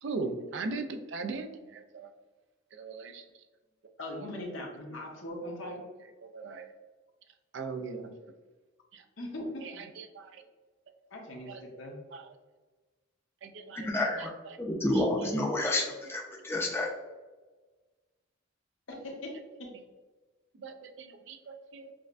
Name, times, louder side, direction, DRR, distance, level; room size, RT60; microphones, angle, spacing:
voice 1, 0.0-2.1 2.7-3.2 4.2-4.3 6.2-6.7 7.5-8.3 8.9-9.0 9.6-10.4 11.5-11.6 12.1-12.3 13.4-13.9 14.2-14.6 14.9-15.1 20.6-21.9, right 3 dB, 65° right, 7 dB, 0.4 m, -39 dB
voice 2, 4.0-5.8 9.2-9.8 11.1-12.0 18.9-19.3 19.6-19.7, left 1 dB, 75° left, -1 dB, 1.0 m, -40 dB
voice 3, 13.7-14.3 14.6-16.9, left 1 dB, 10° left, -1 dB, 0.5 m, -29 dB
6.3 x 2.1 x 2.5 m, 1.3 s
head